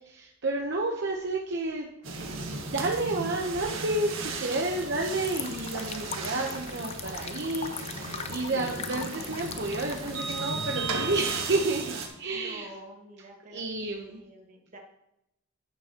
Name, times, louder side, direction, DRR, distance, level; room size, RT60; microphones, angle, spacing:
voice 1, 0.1-1.9 2.7-11.8 12.2-12.7 13.5-14.2, right 2 dB, 60° right, 0 dB, 0.9 m, -30 dB
sound 1, 2.0-12.1, right 3 dB, 80° right, 1.7 m, -35 dB
sound 2, 5.2-10.6, left 6 dB, 30° left, 0.6 m, -40 dB
voice 2, 12.3-14.8, right 1 dB, 40° right, 1 dB, 1.6 m, -48 dB
11.0 x 9.2 x 2.9 m, 0.83 s
head